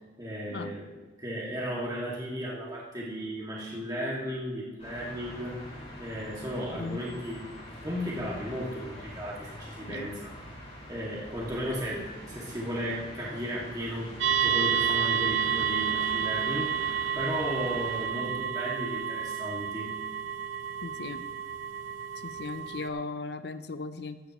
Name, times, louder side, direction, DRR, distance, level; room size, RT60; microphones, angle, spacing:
voice 1, 0.2-0.8 1.2-5.7 6.0-7.4 7.8-10.3 10.9-16.9 17.1-19.9, equal, 20° right, -5 dB, 2.2 m, -35 dB
sound 1, 4.8-18.1, equal, 35° left, 5.1 m, -44 dB
sound 2, 14.2-22.9, right 8 dB, 90° right, 0.9 m, -30 dB
voice 2, 20.8-21.2 22.2-24.2, left 3 dB, 60° left, 11 dB, 0.7 m, -37 dB
15.0 x 13.5 x 3.1 m, 1.2 s
head